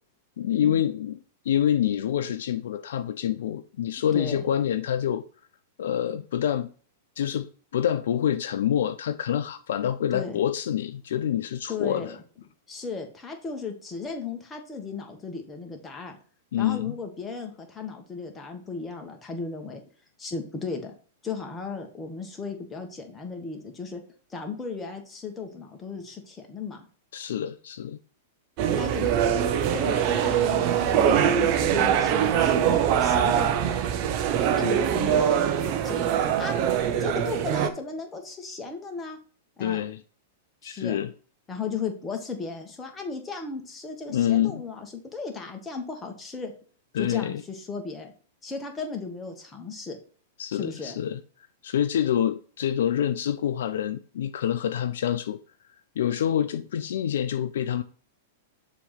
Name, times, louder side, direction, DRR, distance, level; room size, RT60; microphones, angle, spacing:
voice 1, 0.4-5.2 5.8-6.7 7.2-12.1 16.5-17.0 27.1-28.0 39.6-40.0 40.6-41.1 44.1-44.6 46.9-47.4 50.4-51.2 51.6-55.4 56.0-57.8, left 10 dB, 65° left, 0.4 m, -27 dB
voice 2, 4.1-4.4 10.1-10.4 11.7-12.2 12.7-16.2 16.6-19.8 20.2-20.9 21.2-24.0 24.3-26.9 28.8-29.2 29.7-33.8 34.6-36.6 37.0-39.2 39.6-39.8 40.6-41.0 41.5-46.5 46.9-48.1 48.4-50.0 50.6-50.9, left 4 dB, 15° left, 1.4 m, -36 dB
sound 1, 28.6-37.7, right 9 dB, 45° right, 0.7 m, -23 dB
6.9 x 3.1 x 5.6 m
figure-of-eight pair, 100°, 0 cm